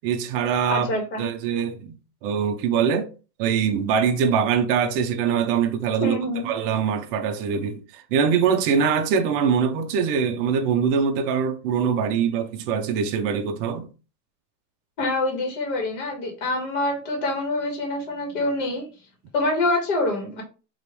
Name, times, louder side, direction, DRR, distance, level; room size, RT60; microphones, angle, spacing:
voice 1, 0.0-0.9 1.2-2.0 2.2-3.1 3.4-6.2 6.4-13.9, right 7 dB, 35° right, 0.7 m, -23 dB
voice 2, 0.7-1.2 6.0-6.5 15.0-18.9 19.3-20.4, left 2 dB, 45° left, 1.8 m, -25 dB
5.0 x 3.0 x 3.2 m
supercardioid pair, 155°, 50 cm